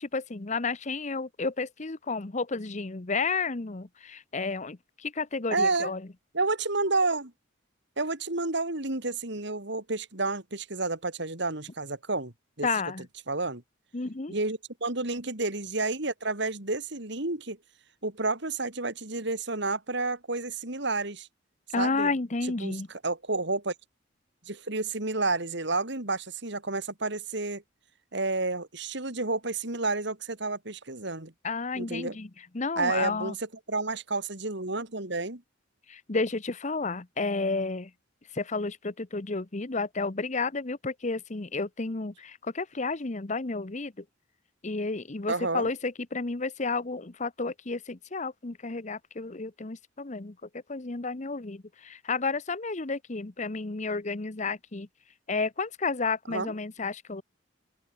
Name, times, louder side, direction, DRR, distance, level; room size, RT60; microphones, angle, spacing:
voice 1, 0.0-6.0 12.6-13.1 13.9-14.4 21.7-22.9 31.4-32.3 32.5-33.4 35.9-37.9 38.3-44.0 44.6-50.3 50.7-54.9 55.3-57.2, left 3 dB, 35° left, 0.9 m, -31 dB
voice 2, 5.5-5.9 6.3-7.3 8.0-12.7 13.3-13.6 14.3-17.6 18.0-21.3 21.8-22.1 22.6-22.8 23.0-23.7 24.5-27.6 28.1-31.3 31.7-32.2 32.8-33.3 33.7-35.4 45.3-45.7 56.3-56.5, right 3 dB, 60° right, 3.3 m, -30 dB
open air
head